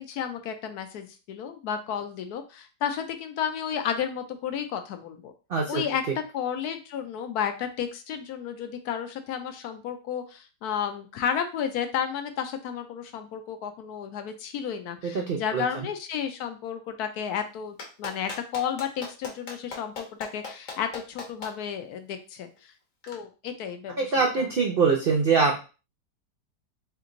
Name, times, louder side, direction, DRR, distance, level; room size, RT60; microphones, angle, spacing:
voice 1, 0.0-5.3 5.7-6.0 6.3-22.7 23.1-24.5, left 8 dB, 75° left, 7 dB, 1.1 m, -32 dB
voice 2, 5.5-5.8 15.1-15.9 24.0-25.6, right 5 dB, 70° right, 1 dB, 0.5 m, -24 dB
Clapping, 17.8-21.5 23.0-23.1, left 3 dB, 55° left, 1.3 m, -37 dB
3.3 x 3.0 x 3.8 m, 0.33 s
omnidirectional pair, 1.8 m